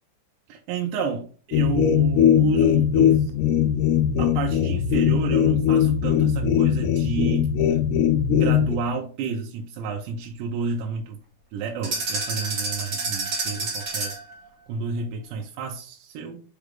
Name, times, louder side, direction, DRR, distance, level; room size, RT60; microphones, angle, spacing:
voice 1, 0.5-3.3 3.7-3.8 4.2-7.8 8.4-11.2 11.5-14.2 14.7-16.4, right 5 dB, 80° right, 1 dB, 2.8 m, -30 dB
sound 1, 1.5-8.8, left 9 dB, 80° left, 2.7 m, -20 dB
sound 2, 11.8-14.3, right 3 dB, 40° right, 1.8 m, -29 dB
6.3 x 4.9 x 3.5 m, 0.41 s
omnidirectional pair, 5.0 m